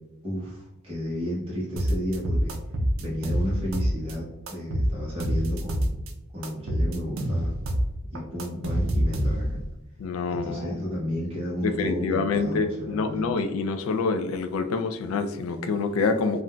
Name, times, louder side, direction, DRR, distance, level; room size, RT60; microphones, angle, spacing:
voice 1, 0.2-2.5 3.0-5.9 6.3-7.6 8.1-9.7 10.3-13.3, equal, 30° right, -8 dB, 0.8 m, -32 dB
sound 1, 1.8-4.1 4.5-6.1 6.4-9.6, equal, 70° right, 0.5 m, -26 dB
voice 2, 10.0-10.8 11.6-16.4, left 4 dB, 75° left, 9 dB, 0.3 m, -26 dB
3.7 x 2.1 x 2.2 m, 0.99 s
head